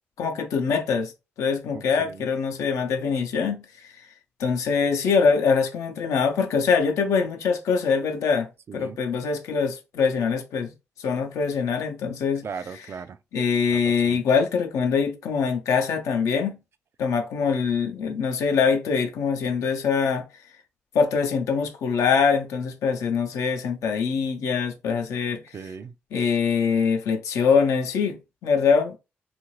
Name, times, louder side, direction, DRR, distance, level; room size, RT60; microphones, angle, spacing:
voice 1, 0.2-1.1 1.4-4.0 4.4-10.7 11.0-12.4 13.3-16.6 17.0-20.2 20.9-25.4 26.1-29.0, left 5 dB, 80° left, 0.6 m, -23 dB
voice 2, 1.7-2.2 8.7-9.0 12.4-13.2 13.7-14.2 25.5-25.9, right 6 dB, 55° right, 0.4 m, -38 dB
2.7 x 2.5 x 3.0 m
hypercardioid pair, 40°, 5 cm